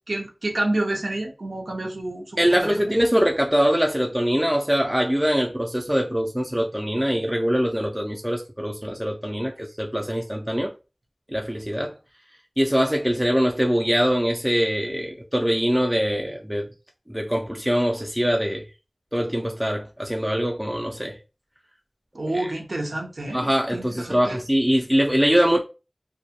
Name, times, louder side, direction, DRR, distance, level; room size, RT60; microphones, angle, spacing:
voice 1, 0.1-3.0 22.1-24.4, right 1 dB, 85° right, 0.6 m, -29 dB
voice 2, 2.4-10.7 11.3-11.9 12.6-16.7 17.1-18.6 19.1-21.2 23.3-25.6, equal, 10° right, 0.4 m, -23 dB
2.2 x 2.1 x 2.7 m
wide cardioid pair, 50°, 0 cm